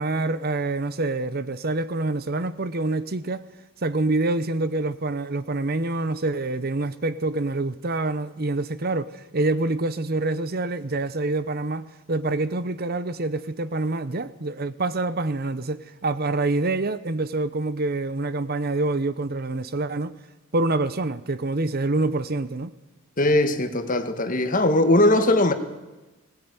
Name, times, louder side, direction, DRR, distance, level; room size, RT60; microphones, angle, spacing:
voice 1, 0.0-3.4 3.8-20.2 20.5-22.7, right 2 dB, 45° right, 0.8 m, -26 dB
voice 2, 23.2-25.5, left 1 dB, 40° left, 1.8 m, -20 dB
20.5 x 18.5 x 9.6 m
head